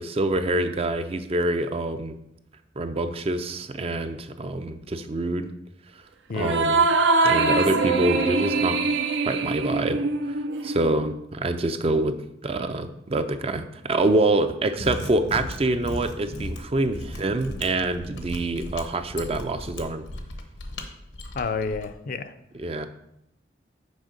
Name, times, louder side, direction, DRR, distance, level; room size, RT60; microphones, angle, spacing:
voice 1, 0.0-2.2 2.8-5.5 6.3-6.9 7.2-8.8 9.2-10.0 10.3-10.4 10.6-12.2 12.4-20.0 22.5-22.9, right 2 dB, 30° right, 9 dB, 0.4 m, -26 dB
sound 1, 6.4-11.1, right 3 dB, 80° right, 0.6 m, -23 dB
Mechanisms, 14.7-21.9, left 1 dB, 85° left, 0.9 m, -36 dB
voice 2, 21.3-22.3, left 4 dB, 50° left, 10 dB, 0.4 m, -29 dB
6.2 x 4.7 x 5.1 m, 0.83 s
head